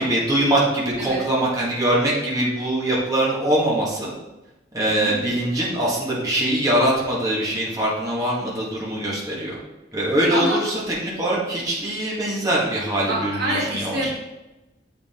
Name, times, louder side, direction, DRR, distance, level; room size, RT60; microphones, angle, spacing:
voice 1, 0.0-4.1 4.7-9.6 9.9-14.1, right 1 dB, 20° right, -6 dB, 1.7 m, -22 dB
voice 2, 10.3-10.6 13.1-14.1, right 1 dB, 65° right, -4 dB, 2.0 m, -26 dB
8.0 x 5.0 x 3.7 m, 1.0 s
head